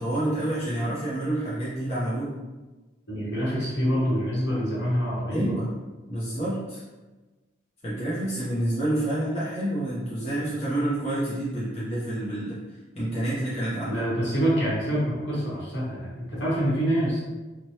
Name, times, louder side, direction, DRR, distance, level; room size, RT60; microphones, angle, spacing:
voice 1, 0.0-2.4 5.3-5.7 6.1-6.8 7.8-12.6 12.9-14.0, right 1 dB, 35° left, -10 dB, 0.6 m, -28 dB
voice 2, 3.1-5.6 13.8-17.2, equal, 70° left, -7 dB, 1.1 m, -26 dB
3.1 x 2.2 x 2.7 m, 1.2 s
head